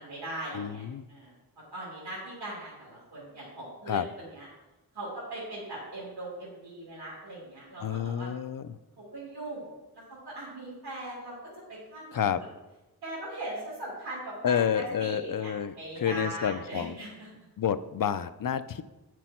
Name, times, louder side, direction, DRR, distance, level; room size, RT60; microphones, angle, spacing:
voice 1, 0.0-4.5 4.9-8.3 9.0-11.4 11.7-12.5 13.0-17.3, right 1 dB, 75° right, -7 dB, 2.9 m, -40 dB
voice 2, 0.5-1.0 3.9-4.1 7.8-8.8 12.1-12.4 14.4-17.0 17.6-18.8, left 8 dB, 55° left, 13 dB, 0.5 m, -29 dB
9.1 x 6.2 x 4.4 m, 1.0 s
wide cardioid pair, 100°, 40 cm